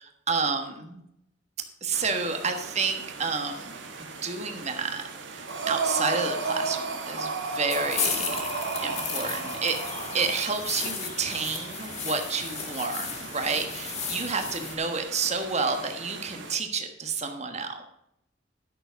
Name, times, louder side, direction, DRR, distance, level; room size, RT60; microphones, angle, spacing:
voice 1, 0.3-1.0 1.8-5.0 5.3-8.4 8.8-9.8 10.1-17.8, right 4 dB, 40° right, 6 dB, 1.4 m, -30 dB
sound 1, 1.9-16.6, right 4 dB, 85° right, 1.5 m, -42 dB
Breathing, 5.5-10.4, right 3 dB, 70° right, 2.5 m, -32 dB
sound 2, 7.7-14.8, left 5 dB, 35° left, 2.0 m, -34 dB
12.0 x 6.9 x 5.2 m, 0.78 s
head